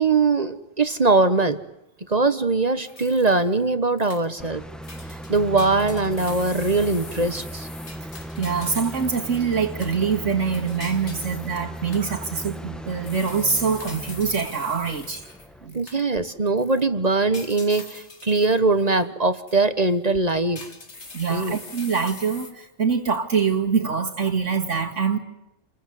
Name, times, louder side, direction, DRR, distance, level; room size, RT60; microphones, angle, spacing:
voice 1, 0.0-1.6 2.1-4.6 5.3-7.7 15.7-20.6 21.3-21.6, right 3 dB, 35° right, 11 dB, 1.2 m, -21 dB
sound 1, 2.8-3.6 4.0-4.6 4.8-9.2 9.8-16.3 16.6-16.8 17.3-19.1 19.5-19.6 20.1-22.5, left 3 dB, 60° left, 2.7 m, -43 dB
sound 2, 4.4-15.7, right 1 dB, ahead, 1.4 m, -37 dB
voice 2, 8.4-15.2 15.6-15.8 21.1-25.2, right 6 dB, 75° right, 2 dB, 2.3 m, -24 dB
29.0 x 21.5 x 9.4 m, 0.88 s
omnidirectional pair, 1.3 m